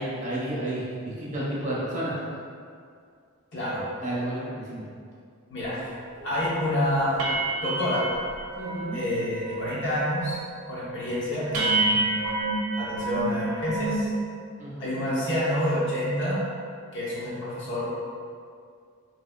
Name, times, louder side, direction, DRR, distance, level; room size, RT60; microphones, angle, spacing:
voice 1, 0.0-2.2 4.0-4.8 8.5-9.0 14.6-14.9, right 1 dB, 35° right, -6 dB, 0.6 m, -31 dB
voice 2, 3.5-3.8 5.5-5.8 6.2-7.1 7.6-8.0 8.9-10.4 10.7-12.1 12.8-14.1 14.8-16.4 16.9-17.8, left 1 dB, 55° left, -9 dB, 1.0 m, -28 dB
sound 1, 5.7-5.8 6.2-6.4 6.7-6.8 7.2-9.0 9.3-9.8 10.0-10.5 10.9-11.0 11.5-14.1, right 2 dB, 80° right, 0.6 m, -28 dB
3.5 x 2.9 x 2.3 m, 2.2 s
head